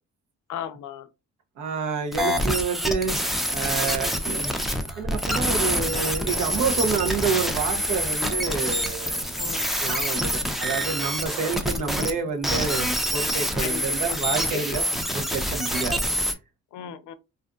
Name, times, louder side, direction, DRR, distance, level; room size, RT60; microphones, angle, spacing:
voice 1, 0.5-1.1 9.4-9.7 13.6-14.6 16.7-17.1, left 9 dB, 75° left, 0.5 m, -36 dB
voice 2, 1.6-3.2 3.5-4.5 5.0-9.2 9.8-14.8 15.1-16.3, right 5 dB, 80° right, 0.8 m, -28 dB
sound 1, 2.1-12.1 12.4-16.3, equal, ahead, 0.4 m, -26 dB
Guitar Wail, 4.8-12.1, right 6 dB, 55° right, 1.3 m, -44 dB
2.5 x 2.4 x 2.3 m
cardioid pair, 90°, 30 cm